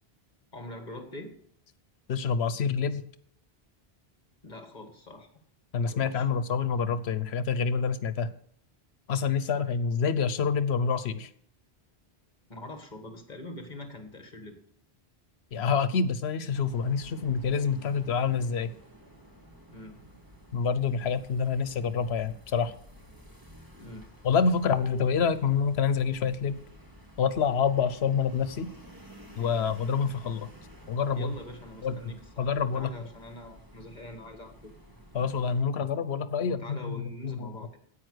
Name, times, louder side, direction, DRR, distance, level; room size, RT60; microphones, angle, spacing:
voice 1, 0.5-1.3 4.4-5.3 5.8-6.3 12.5-14.6 19.7-20.0 23.8-24.2 31.1-34.7 36.4-37.8, left 1 dB, 45° left, 5 dB, 1.8 m, -44 dB
voice 2, 2.1-3.0 5.7-8.3 9.1-11.3 15.5-18.7 20.5-22.7 24.2-26.6 27.2-28.7 29.4-30.5 30.9-31.3 31.8-32.0 32.4-32.9 35.1-37.5, left 6 dB, 80° left, 14 dB, 1.0 m, -27 dB
sound 1, 16.5-35.6, equal, 20° right, 1.8 m, -52 dB
9.8 x 8.5 x 6.3 m, 0.64 s
omnidirectional pair, 1.1 m